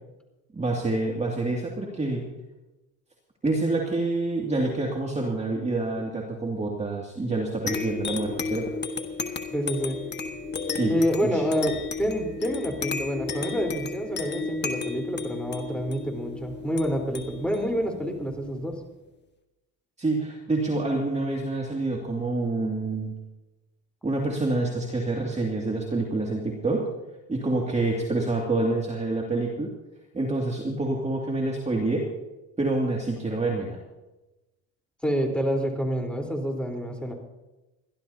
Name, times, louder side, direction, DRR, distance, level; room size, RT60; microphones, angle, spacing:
voice 1, 0.5-2.3 3.4-8.7 10.7-10.9 11.2-11.4 20.0-23.1 24.0-26.9 27.3-29.7 30.1-32.0 32.6-33.8, right 2 dB, 20° right, -1 dB, 2.4 m, -27 dB
sound 1, 7.7-18.7, left 4 dB, 30° left, 1.5 m, -33 dB
voice 2, 9.5-10.0 10.9-18.8 35.0-37.1, equal, 5° left, 1 dB, 3.9 m, -28 dB
29.5 x 12.0 x 2.8 m, 1.0 s
supercardioid pair, 85°, 36 cm